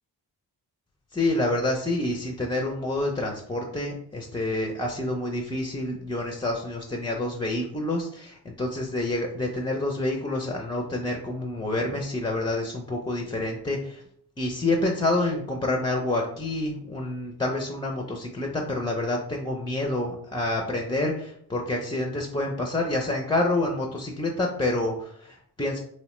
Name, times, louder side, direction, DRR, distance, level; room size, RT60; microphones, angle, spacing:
voice 1, 1.1-14.0 14.4-25.8, left 2 dB, 10° left, 0 dB, 0.4 m, -28 dB
3.1 x 2.1 x 2.9 m, 0.66 s
cardioid pair, 50°, 43 cm